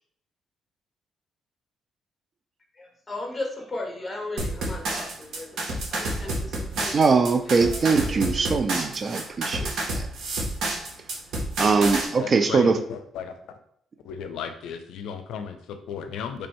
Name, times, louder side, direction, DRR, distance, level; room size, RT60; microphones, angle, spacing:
voice 1, 2.7-8.2, left 2 dB, 20° left, 1 dB, 1.1 m, -37 dB
sound 1, 4.4-12.1, right 2 dB, 70° right, 1.0 m, -29 dB
voice 2, 6.9-10.1 11.6-12.8, right 4 dB, 45° right, 9 dB, 0.4 m, -22 dB
voice 3, 12.2-13.4 14.0-16.5, left 7 dB, 85° left, 7 dB, 0.4 m, -35 dB
3.2 x 2.6 x 4.4 m, 0.67 s
cardioid pair, 90°, 0 cm